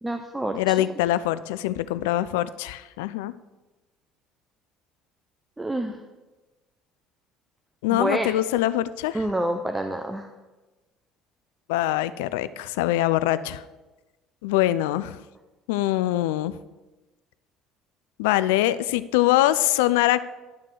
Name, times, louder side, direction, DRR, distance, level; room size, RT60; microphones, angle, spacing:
voice 1, 0.0-0.7 5.6-6.0 7.9-8.3 9.1-10.3, right 1 dB, 15° right, 5 dB, 0.7 m, -27 dB
voice 2, 0.5-3.3 7.8-9.2 11.7-13.6 14.4-15.2 15.7-16.5 18.2-20.2, left 14 dB, 70° left, 14 dB, 0.3 m, -23 dB
11.0 x 3.7 x 6.3 m, 1.2 s
hypercardioid pair, 60°, 0 cm